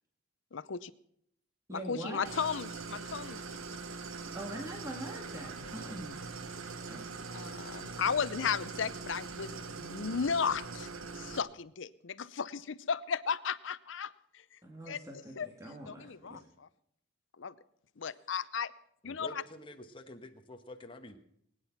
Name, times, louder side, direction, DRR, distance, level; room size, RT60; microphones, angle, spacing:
voice 1, 0.5-0.9 1.7-3.4 5.8-5.9 7.3-10.9 11.2-14.1 14.9-15.0 15.4-15.5 15.9-16.7 17.4-17.5 18.0-18.7 19.0-19.4, left 6 dB, 70° left, 16 dB, 0.6 m, -35 dB
voice 2, 1.7-2.3 4.3-7.1 14.6-16.5, right 1 dB, 15° right, 1 dB, 1.7 m, -44 dB
Idling, 2.3-11.4, right 4 dB, 90° right, 1.1 m, -42 dB
voice 3, 19.0-21.2, left 1 dB, 25° left, 5 dB, 1.2 m, -48 dB
21.0 x 9.8 x 5.8 m, 0.71 s
head